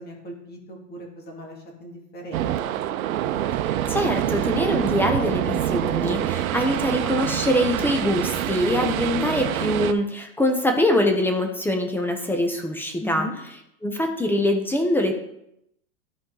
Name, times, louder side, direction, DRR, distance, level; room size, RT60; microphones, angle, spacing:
voice 1, 0.0-2.8 13.0-13.3, equal, 25° left, 0 dB, 2.2 m, -38 dB
sound 1, 2.3-9.9, right 12 dB, 80° right, 0.7 m, -26 dB
voice 2, 3.6-13.3 13.8-15.2, left 1 dB, 5° left, 4 dB, 0.7 m, -23 dB
13.5 x 4.5 x 3.9 m, 0.79 s
supercardioid pair, 150°, 41 cm